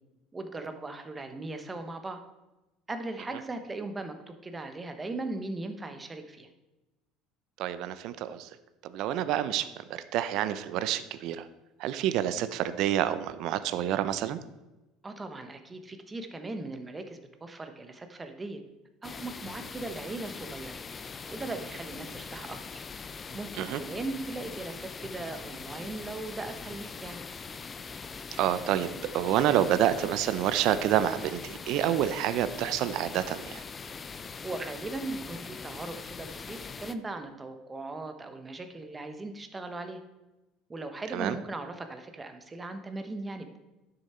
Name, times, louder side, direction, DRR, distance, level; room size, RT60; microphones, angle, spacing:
voice 1, 0.3-2.2 2.9-6.5 15.0-18.6 19.0-20.8 21.3-22.6 23.3-27.2 34.4-40.0 40.7-43.6, right 2 dB, 15° right, 7 dB, 0.9 m, -38 dB
voice 2, 7.6-8.5 8.8-11.4 11.8-14.4 23.6-23.8 28.4-28.9 29.1-33.6 41.1-41.3, right 11 dB, 60° right, 13 dB, 0.6 m, -28 dB
sound 1, 19.0-36.9, left 5 dB, 20° left, 0.4 m, -42 dB
11.0 x 6.7 x 4.4 m, 1.1 s
cardioid pair, 145°, 0 cm